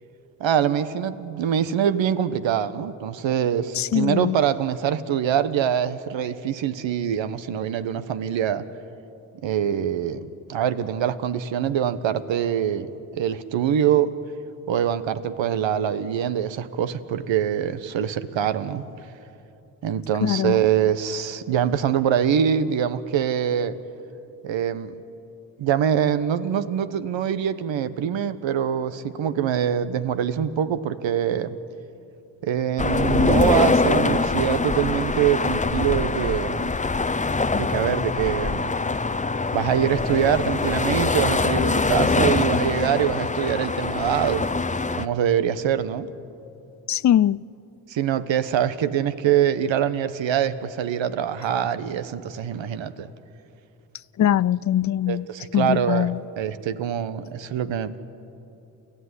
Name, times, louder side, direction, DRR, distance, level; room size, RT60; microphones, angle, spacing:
voice 1, 0.4-8.6 9.4-12.9 13.2-14.1 14.7-18.8 19.8-23.8 24.4-24.9 25.6-31.6 32.4-36.7 37.5-38.7 39.5-44.5 44.9-46.1 47.9-53.1 55.1-56.1 56.4-58.0, right 9 dB, 75° right, 1.2 m, -24 dB
voice 2, 3.7-4.4 20.2-20.6 46.9-47.4 54.2-55.3 55.5-56.2, left 11 dB, 40° left, 0.5 m, -21 dB
sound 1, 32.8-45.0, left 3 dB, 15° left, 0.8 m, -23 dB
28.5 x 14.5 x 9.7 m
supercardioid pair, 55°, 46 cm